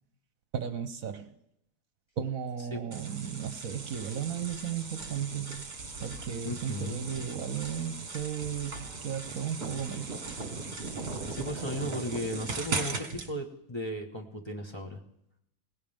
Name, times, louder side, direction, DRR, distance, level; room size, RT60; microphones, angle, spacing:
voice 1, 0.5-1.3 2.2-5.7 6.0-10.1, right 8 dB, 65° right, 10 dB, 1.2 m, -35 dB
sound 1, 2.9-13.3, right 4 dB, 40° right, 1.7 m, -38 dB
voice 2, 6.4-7.0 10.9-15.0, equal, 20° left, 0 dB, 1.4 m, -36 dB
18.5 x 17.0 x 3.6 m, 0.80 s
omnidirectional pair, 1.6 m